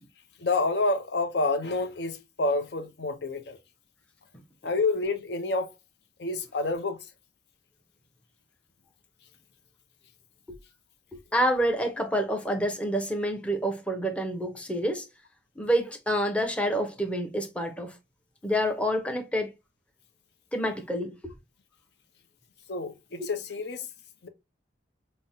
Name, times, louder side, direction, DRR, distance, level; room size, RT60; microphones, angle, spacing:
voice 1, 0.4-3.6 4.6-5.7 6.2-7.0 22.7-23.9 24.2-24.3, left 3 dB, 60° left, 0.6 m, -28 dB
voice 2, 11.1-15.1 15.6-17.9 18.4-19.5 20.5-21.3, equal, 5° left, 0.6 m, -28 dB
5.2 x 2.1 x 2.6 m
head